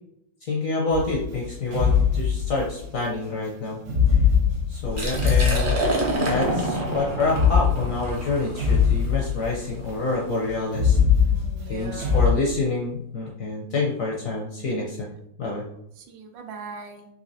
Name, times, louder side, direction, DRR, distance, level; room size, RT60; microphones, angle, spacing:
voice 1, 0.4-3.8 4.7-5.8 6.3-11.0 11.7-15.1 15.4-15.6, left 3 dB, 65° left, -3 dB, 0.8 m, -27 dB
sound 1, 0.9-2.9 3.8-6.3 7.2-9.7 10.7-12.3, left 7 dB, 65° right, 1.4 m, -22 dB
Liquid, 4.8-10.6, right 1 dB, 45° right, 0.7 m, -28 dB
voice 2, 11.3-12.3 16.0-17.1, right 5 dB, 80° right, 4 dB, 1.3 m, -40 dB
4.1 x 2.8 x 2.7 m, 0.75 s
omnidirectional pair, 2.0 m